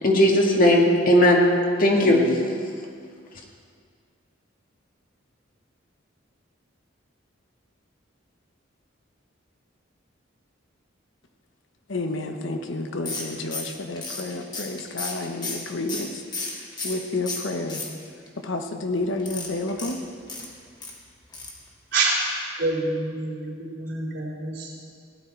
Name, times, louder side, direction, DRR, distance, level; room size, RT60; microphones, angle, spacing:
voice 1, 0.0-1.5 1.8-2.4, left 1 dB, 45° left, -1 dB, 1.9 m, -17 dB
voice 2, 11.9-17.9 18.4-20.0, left 2 dB, 70° left, 5 dB, 1.1 m, -30 dB
sound 1, 13.1-17.0 17.3-18.3 19.2-20.9 21.3-21.6 21.9-22.0 22.3-22.4, left 3 dB, 25° left, 1.8 m, -34 dB
voice 3, 22.6-24.7, right 3 dB, 60° right, -4 dB, 3.7 m, -27 dB
17.0 x 10.5 x 4.6 m, 2.1 s
head